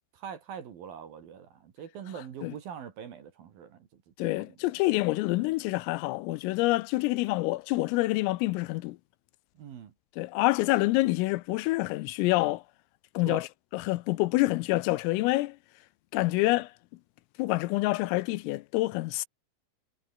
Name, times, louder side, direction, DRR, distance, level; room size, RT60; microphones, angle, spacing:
voice 1, 0.1-3.9 4.2-4.5 9.6-9.9 13.3-13.4, right 8 dB, 55° right, 3.3 m, -43 dB
voice 2, 4.2-9.0 10.2-12.6 13.1-13.5 13.7-15.6 16.1-16.7 17.4-19.3, left 20 dB, 85° left, 3.4 m, -27 dB
omnidirectional pair, 5.9 m